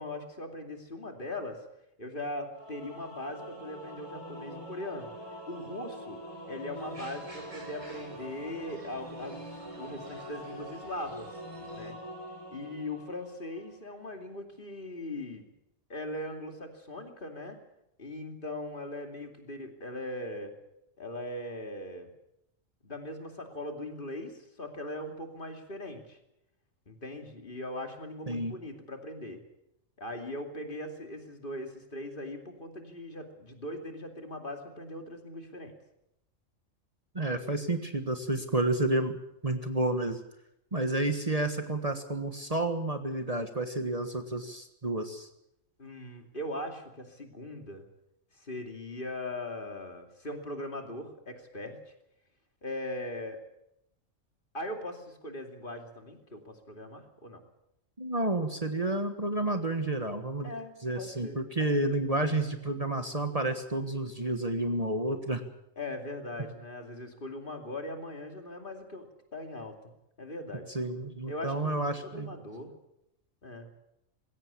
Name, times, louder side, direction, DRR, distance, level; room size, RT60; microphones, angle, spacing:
voice 1, 0.0-1.7 2.0-5.1 5.5-6.2 6.5-9.5 9.8-11.3 11.7-12.0 12.5-15.5 15.9-17.6 18.0-20.5 21.0-22.1 22.8-26.2 26.9-29.4 30.0-35.7 45.8-47.8 48.3-51.9 52.6-53.4 54.5-57.4 60.4-61.4 65.8-69.7 70.2-70.6 71.3-72.7 73.4-73.7, left 1 dB, 40° left, 4 dB, 2.8 m, -40 dB
Singing / Musical instrument, 2.5-13.8, equal, 25° left, 6.3 m, -44 dB
sound 1, 6.7-11.9, right 1 dB, 75° right, 4.5 m, -53 dB
voice 2, 28.3-28.6 37.1-39.2 39.4-40.2 40.7-45.3 58.0-60.5 60.8-65.4 70.7-72.3, right 2 dB, 30° right, 7 dB, 1.5 m, -30 dB
20.5 x 17.0 x 8.5 m, 0.82 s
omnidirectional pair, 1.3 m